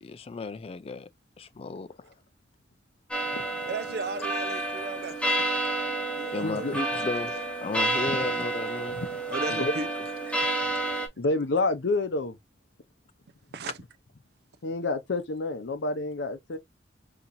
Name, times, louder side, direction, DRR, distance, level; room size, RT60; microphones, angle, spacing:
voice 1, 0.0-1.1 1.4-1.9 6.3-7.3 7.6-9.0, left 4 dB, 35° left, 0.3 m, -34 dB
sound 1, 3.1-11.1, right 2 dB, 5° left, 0.8 m, -30 dB
voice 2, 3.7-5.3 6.2-6.7 7.3-7.5 9.3-9.9 10.3-10.4 13.5-13.8, right 3 dB, 65° right, 0.5 m, -35 dB
voice 3, 6.4-6.7 8.1-8.2 9.0-9.1 9.6-9.7 11.2-12.4 14.6-16.6, left 2 dB, 80° left, 0.6 m, -28 dB
4.2 x 2.9 x 2.5 m
head